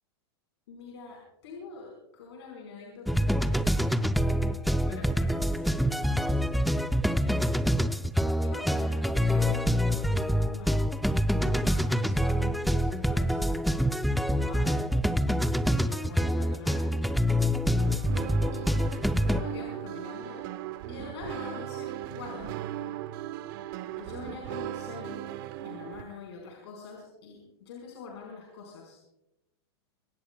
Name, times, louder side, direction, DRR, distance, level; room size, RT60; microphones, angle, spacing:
voice 1, 0.7-6.9 7.2-8.0 8.4-10.8 11.4-14.9 15.5-18.0 18.5-18.8 19.2-20.5 20.9-22.5 24.0-25.3 25.6-29.0, left 4 dB, 75° left, 0 dB, 4.9 m, -45 dB
sound 1, 3.1-19.4, equal, ahead, 0.5 m, -26 dB
sound 2, 17.8-26.0, right 13 dB, 50° right, 1.0 m, -38 dB
24.5 x 17.5 x 2.3 m, 0.90 s
supercardioid pair, 145°, 14 cm